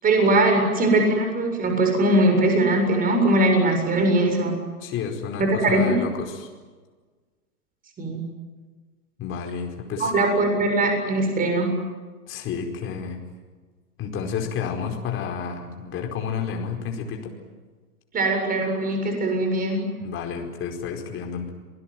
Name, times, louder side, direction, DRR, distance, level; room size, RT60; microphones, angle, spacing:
voice 1, 0.0-4.6 5.4-5.9 8.0-8.2 10.0-11.7 18.1-19.8, right 2 dB, 20° right, 4 dB, 7.4 m, -21 dB
voice 2, 4.8-6.5 9.2-10.1 12.3-13.2 14.0-17.3 20.0-21.5, left 6 dB, 30° left, 2 dB, 4.8 m, -31 dB
28.5 x 20.5 x 9.3 m, 1.4 s
hypercardioid pair, 135°, 44 cm